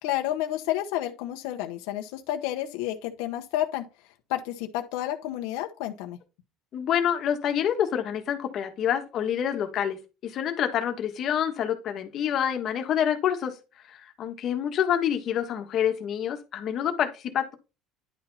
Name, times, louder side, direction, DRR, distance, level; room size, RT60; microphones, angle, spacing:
voice 1, 0.0-3.9 4.3-6.2, left 13 dB, 85° left, 0.9 m, -30 dB
voice 2, 6.7-10.0 10.2-13.5 14.2-17.5, left 9 dB, 40° left, 1.4 m, -27 dB
10.5 x 4.2 x 4.1 m
cardioid pair, 160°, 0 cm